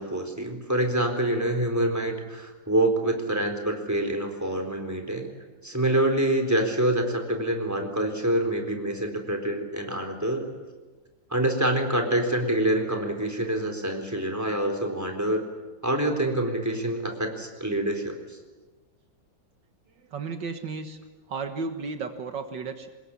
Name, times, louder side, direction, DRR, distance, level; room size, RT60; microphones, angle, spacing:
voice 1, 0.0-5.3 5.6-10.5 11.3-15.4 15.8-18.4, right 1 dB, 10° right, 3 dB, 4.0 m, -26 dB
voice 2, 20.0-21.0 21.3-22.9, right 4 dB, 70° right, 7 dB, 2.2 m, -34 dB
25.5 x 21.0 x 9.9 m, 1.3 s
omnidirectional pair, 2.1 m